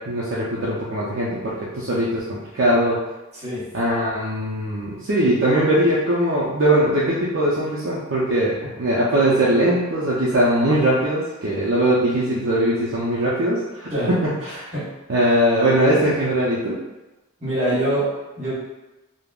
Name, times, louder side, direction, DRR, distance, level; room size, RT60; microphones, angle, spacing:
voice 1, 0.1-3.0 3.7-14.3 15.1-16.8, right 1 dB, 55° right, -7 dB, 0.5 m, -20 dB
voice 2, 3.3-3.6 13.9-14.1 14.4-14.9 17.4-18.5, right 1 dB, 30° right, -9 dB, 1.1 m, -25 dB
3.4 x 2.0 x 2.3 m, 1.0 s
head